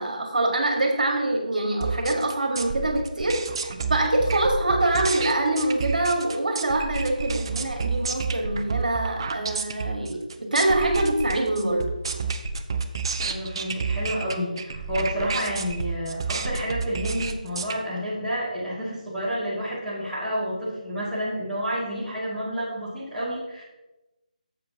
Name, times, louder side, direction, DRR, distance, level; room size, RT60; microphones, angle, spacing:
voice 1, 0.0-3.4 3.9-11.9, right 2 dB, 70° right, 2 dB, 1.7 m, -24 dB
sound 1, 1.8-17.8, right 4 dB, 35° right, 0.5 m, -30 dB
voice 2, 13.2-23.6, equal, ahead, -14 dB, 2.5 m, -30 dB
10.0 x 7.3 x 2.9 m, 1.0 s
figure-of-eight pair, 165°, 4 cm